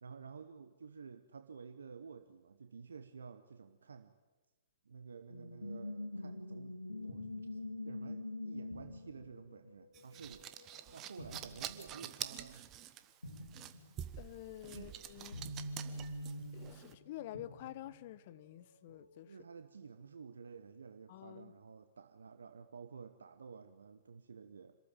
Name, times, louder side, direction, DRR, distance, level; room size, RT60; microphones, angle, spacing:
voice 1, 0.0-4.1 4.8-6.8 7.0-10.5 10.9-12.7 14.7-15.3 19.3-24.8, right 5 dB, 65° right, 1.0 m, -52 dB
sound 1, 5.3-10.9 11.2-11.9 12.2-12.3 13.2-14.0 14.8-18.1 18.9-19.3, left 1 dB, 80° left, 2.2 m, -45 dB
sound 2, 9.9-16.9, right 11 dB, 25° right, 1.3 m, -47 dB
voice 2, 14.2-15.5 16.5-19.3 21.1-21.5, left 14 dB, 40° left, 0.8 m, -49 dB
26.0 x 13.5 x 8.9 m
figure-of-eight pair, 110°, 0 cm